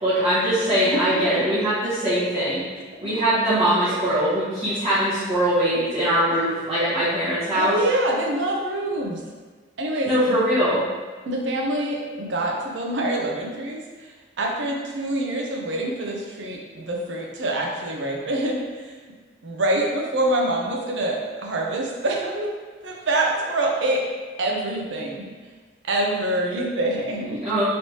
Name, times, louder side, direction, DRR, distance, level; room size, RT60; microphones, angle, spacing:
voice 1, 0.0-2.6 3.0-7.7 10.0-10.8 27.3-27.6, right 1 dB, 35° right, -14 dB, 0.9 m, -22 dB
voice 2, 0.7-1.5 3.8-4.3 7.5-9.2 9.8-10.4 11.2-19.0 19.4-22.5 22.8-24.0 24.4-25.3 25.8-27.4, right 1 dB, 75° right, 0 dB, 0.6 m, -26 dB
3.2 x 3.0 x 2.8 m, 1.4 s
head